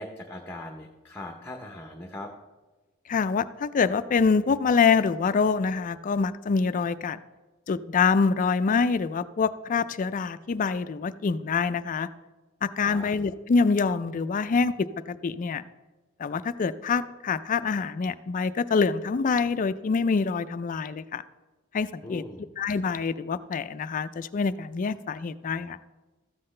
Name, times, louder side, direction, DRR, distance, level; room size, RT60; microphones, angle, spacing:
voice 1, 0.0-2.3 12.8-13.1 22.0-22.5, left 1 dB, 10° left, 3 dB, 0.7 m, -40 dB
voice 2, 3.1-7.2 7.7-12.1 12.6-14.7 15.1-15.6 16.2-21.2 21.7-22.2 22.6-25.8, left 5 dB, 35° left, 13 dB, 0.3 m, -25 dB
13.5 x 7.7 x 3.2 m, 1.2 s
head